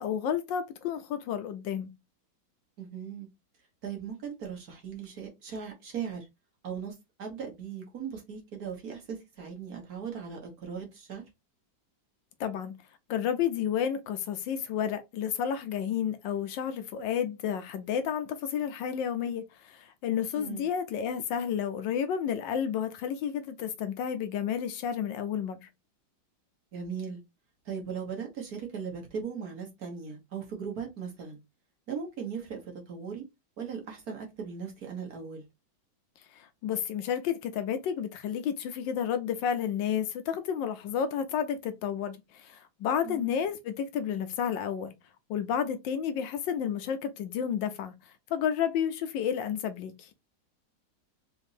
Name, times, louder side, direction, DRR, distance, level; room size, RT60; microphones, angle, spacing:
voice 1, 0.0-1.9 12.4-12.7 13.1-25.7 36.3-44.9 45.3-50.1, left 8 dB, 75° left, 1.2 m, -31 dB
voice 2, 2.8-3.3 3.8-6.2 6.6-11.2 20.4-20.6 26.7-27.2 27.6-31.4 31.9-33.2 33.6-35.4 43.0-43.3, right 6 dB, 50° right, 1.5 m, -38 dB
4.0 x 3.4 x 2.7 m
omnidirectional pair, 2.2 m